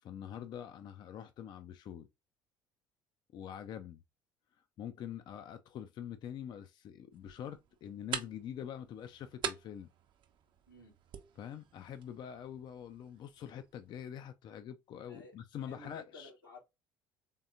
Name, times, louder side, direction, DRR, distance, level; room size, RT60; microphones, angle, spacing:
voice 1, 0.0-2.1 3.3-4.0 4.8-9.9 11.4-16.3, left 9 dB, 40° left, 0.4 m, -45 dB
sound 1, 7.1-14.1, right 8 dB, 45° right, 0.7 m, -46 dB
voice 2, 15.7-16.6, left 2 dB, 90° left, 1.7 m, -53 dB
3.6 x 3.4 x 2.5 m
figure-of-eight pair, 60°, 11 cm